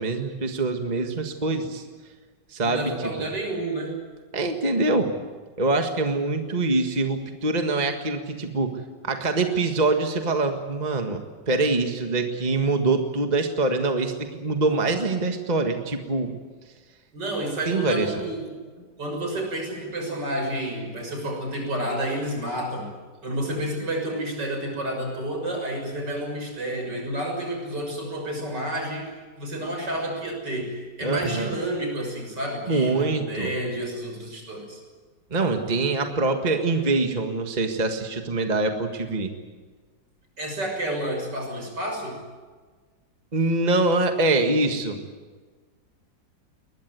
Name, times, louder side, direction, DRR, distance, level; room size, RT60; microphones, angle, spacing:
voice 1, 0.0-1.9 2.5-3.1 4.3-5.1 5.6-16.3 17.7-18.1 31.0-31.6 32.7-33.5 35.3-39.3 43.3-45.0, right 3 dB, 25° right, 5 dB, 1.7 m, -24 dB
voice 2, 2.6-4.0 17.1-18.6 19.0-22.9 23.2-34.8 40.4-42.2, right 1 dB, 70° right, 2 dB, 7.1 m, -30 dB
21.5 x 21.0 x 9.3 m, 1.4 s
omnidirectional pair, 1.9 m